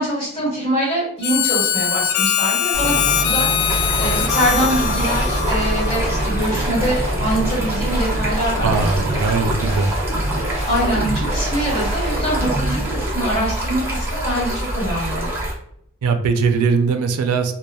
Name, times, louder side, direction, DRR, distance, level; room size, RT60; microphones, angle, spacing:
voice 1, 0.0-8.9 10.6-15.3, right 1 dB, 25° left, -6 dB, 1.4 m, -24 dB
Harmonica, 1.2-6.4, left 9 dB, 80° left, 0.3 m, -22 dB
sound 1, 2.7-13.0, equal, 25° right, 1.0 m, -26 dB
Stream, 3.7-15.5, right 1 dB, 10° right, 0.5 m, -25 dB
voice 2, 8.6-9.9 16.0-17.5, right 4 dB, 85° right, 7 dB, 0.4 m, -20 dB
3.0 x 2.1 x 2.2 m, 0.72 s
head